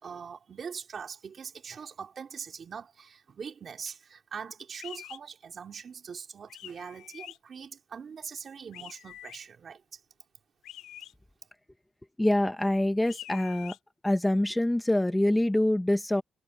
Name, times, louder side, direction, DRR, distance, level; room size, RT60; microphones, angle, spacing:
voice 1, 0.0-10.0, right 6 dB, 50° right, 3.3 m, -42 dB
sound 1, 4.8-5.2 6.5-7.4 8.7-9.4 10.6-11.1 13.0-13.8, left 13 dB, 85° left, 5.4 m, -45 dB
voice 2, 12.2-13.7 14.0-16.2, left 1 dB, 10° left, 1.3 m, -25 dB
cardioid pair, 90°, 0 cm